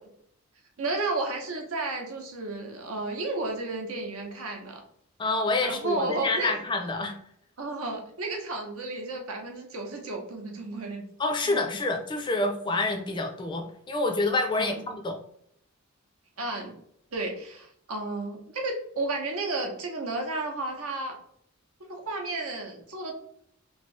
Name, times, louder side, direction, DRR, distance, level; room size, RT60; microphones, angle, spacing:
voice 1, 0.8-4.8 5.6-6.6 7.6-11.0 11.5-11.6 14.6-14.8 16.4-16.7 17.1-21.2 21.9-23.1, right 2 dB, 75° right, 2 dB, 0.8 m, -32 dB
voice 2, 5.2-7.2 11.2-15.2, left 2 dB, 20° left, 4 dB, 0.4 m, -27 dB
3.1 x 2.7 x 3.1 m, 0.68 s
head